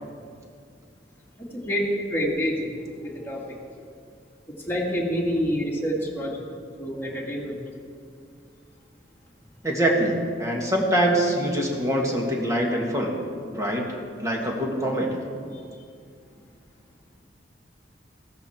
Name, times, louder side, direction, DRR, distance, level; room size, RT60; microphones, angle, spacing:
voice 1, 2.1-2.7 3.0-3.6 4.7-6.4 6.8-7.6, equal, 10° left, -4 dB, 2.5 m, -27 dB
voice 2, 9.6-13.2 13.6-13.9 14.2-15.2, right 1 dB, 20° right, -1 dB, 2.1 m, -24 dB
15.5 x 13.5 x 4.5 m, 2.2 s
head